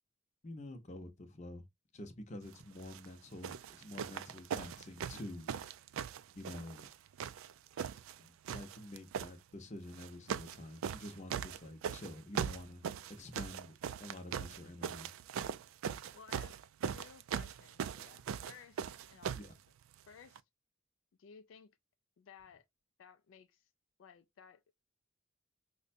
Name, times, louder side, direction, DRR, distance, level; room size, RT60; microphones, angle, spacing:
voice 1, 0.4-1.6 1.9-5.6 6.3-6.9 8.2-12.8 13.1-13.7 14.0-15.1 19.4-19.5, left 1 dB, 35° left, 0.7 m, -48 dB
sound 1, 2.8-3.0 3.4-6.9 7.2-8.2 8.4-9.3 9.9-10.6 10.8-19.5 20.3-20.4, right 7 dB, 85° right, 0.3 m, -40 dB
voice 2, 16.1-19.4 20.1-20.4 21.2-21.7 22.2-22.6 23.0-23.7 24.0-24.6, left 7 dB, 70° left, 0.3 m, -58 dB
4.9 x 2.2 x 2.5 m
head